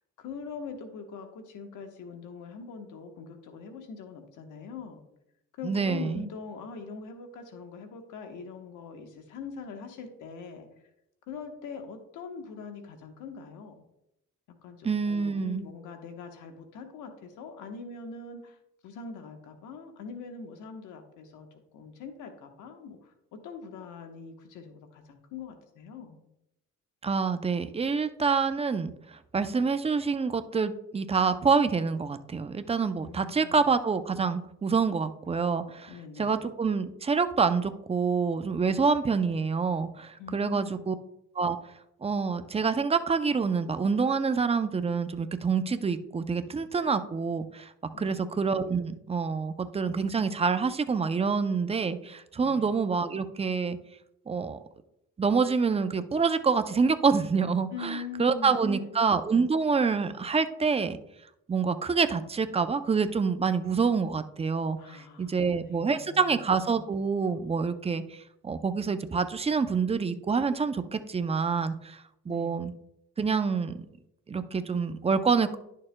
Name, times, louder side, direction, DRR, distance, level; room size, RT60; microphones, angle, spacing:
voice 1, 0.2-5.0 5.6-10.7 11.3-13.7 14.6-18.6 18.8-21.5 21.7-23.1 23.4-26.2 33.0-33.7 35.9-36.4 40.2-40.9 47.9-48.3 52.4-52.7 57.7-59.0 64.8-66.4 72.3-72.5, left 5 dB, 85° left, 5 dB, 1.2 m, -42 dB
voice 2, 5.6-6.2 14.8-15.6 27.0-35.9 36.2-41.0 41.4-41.6 42.0-47.7 48.0-53.8 54.3-54.6 55.2-61.0 61.5-72.7 73.2-73.7 74.3-75.6, right 5 dB, 20° right, 10 dB, 0.5 m, -27 dB
11.0 x 6.6 x 2.2 m, 0.83 s
cardioid pair, 90°, 30 cm